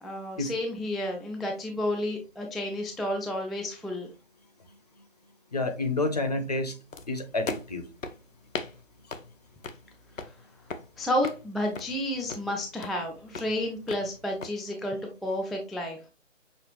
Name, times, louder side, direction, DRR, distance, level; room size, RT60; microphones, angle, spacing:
voice 1, 0.0-4.1 11.0-16.0, left 1 dB, ahead, 0.3 m, -31 dB
voice 2, 5.5-6.8 7.1-7.8, left 2 dB, 30° left, 0.6 m, -29 dB
sound 1, 6.9-14.5, left 4 dB, 85° left, 0.8 m, -41 dB
6.4 x 2.6 x 3.0 m
figure-of-eight pair, 150°, 38 cm